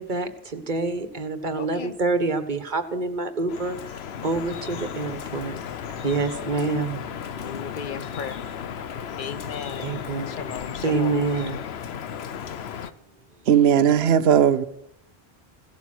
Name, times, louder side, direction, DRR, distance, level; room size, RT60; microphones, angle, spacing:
voice 1, 0.0-5.6 6.0-7.0 9.8-10.4 10.8-11.6, right 3 dB, 50° right, 1.5 m, -27 dB
voice 2, 1.5-2.0 7.3-8.4 9.2-11.3, left 7 dB, 55° left, 0.9 m, -36 dB
Drip, 3.5-12.9, left 8 dB, 75° left, 1.0 m, -35 dB
voice 3, 13.5-14.6, right 8 dB, 80° right, 1.0 m, -17 dB
16.5 x 12.5 x 6.2 m
omnidirectional pair, 1.1 m